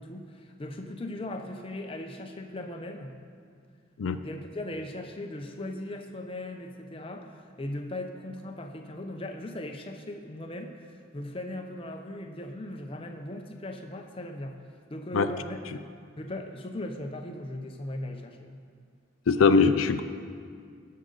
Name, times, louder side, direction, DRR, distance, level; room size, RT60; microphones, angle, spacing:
voice 1, 0.0-3.1 4.2-14.6 14.9-15.6 16.2-18.5, left 1 dB, 25° left, 4 dB, 0.7 m, -38 dB
voice 2, 19.3-20.0, left 4 dB, 80° left, 10 dB, 0.4 m, -21 dB
16.5 x 6.6 x 3.9 m, 2.1 s
head